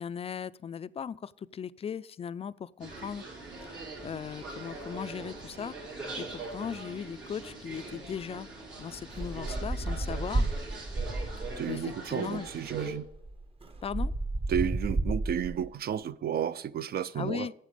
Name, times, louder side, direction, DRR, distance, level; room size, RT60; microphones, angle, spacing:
voice 1, 0.0-3.2 3.7-3.8 4.0-8.5 8.8-10.5 11.7-12.5 13.8-14.1 17.2-17.5, left 7 dB, 30° left, 0.3 m, -38 dB
sound 1, 2.8-12.9, right 3 dB, 75° right, 4.2 m, -42 dB
sound 2, 9.1-11.7 12.7-12.8 13.0-15.7, right 2 dB, 30° right, 0.8 m, -32 dB
voice 2, 11.6-13.1 14.5-17.5, right 9 dB, 50° right, 0.4 m, -32 dB
9.0 x 7.3 x 5.1 m
cardioid pair, 90°, 20 cm